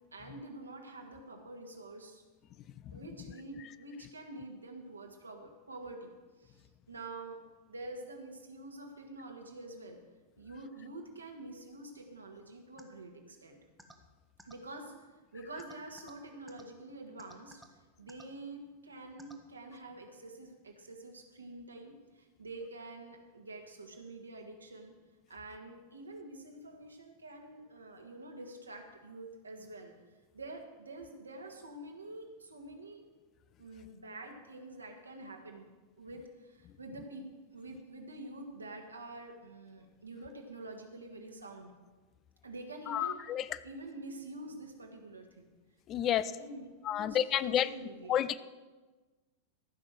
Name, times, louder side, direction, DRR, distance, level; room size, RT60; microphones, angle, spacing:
voice 1, 0.1-2.2 2.9-6.1 6.4-7.4 7.7-10.0 10.4-13.6 14.4-15.1 15.3-17.6 18.0-24.9 25.3-29.9 30.3-33.0 33.6-35.7 36.0-37.3 37.5-41.7 42.4-43.2 43.6-45.5 45.9-48.2, right 2 dB, 75° right, 3 dB, 1.8 m, -47 dB
sound 1, 12.8-12.9 13.8-13.9 14.4-14.5 15.6-16.1 16.5-16.6 17.2-17.7 18.1-18.2 19.2-19.3, right 1 dB, 5° right, 1.3 m, -53 dB
voice 2, 42.9-43.4 45.9-46.2 46.9-47.7 48.1-48.4, left 11 dB, 30° left, 16 dB, 0.4 m, -30 dB
14.5 x 6.0 x 7.4 m, 1.3 s
figure-of-eight pair, 90°, 0 cm